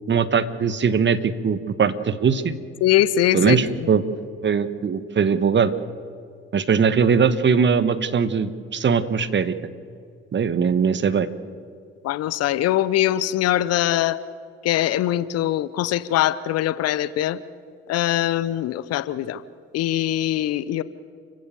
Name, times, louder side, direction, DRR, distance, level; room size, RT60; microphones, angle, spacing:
voice 1, 0.1-2.5 3.3-4.0 4.4-5.7 6.5-9.5 10.3-11.3, right 6 dB, 35° right, 14 dB, 1.4 m, -20 dB
voice 2, 2.8-3.6 12.0-14.2 14.6-17.4 17.9-19.4 19.7-20.8, left 13 dB, 55° left, 17 dB, 0.8 m, -22 dB
29.0 x 16.0 x 7.0 m, 2.3 s
figure-of-eight pair, 45°, 30 cm